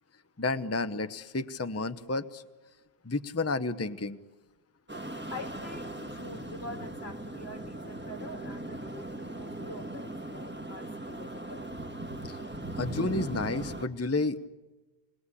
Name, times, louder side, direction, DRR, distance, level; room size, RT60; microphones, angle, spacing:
voice 1, 0.4-2.4 3.0-4.2 12.3-12.4 12.8-14.5, left 3 dB, 15° left, 10 dB, 0.8 m, -31 dB
sound 1, 4.9-13.9, right 1 dB, 10° right, 1.5 m, -39 dB
voice 2, 5.3-11.6, left 2 dB, 75° left, 5 dB, 2.8 m, -45 dB
28.0 x 21.0 x 8.5 m, 1.2 s
omnidirectional pair, 1.1 m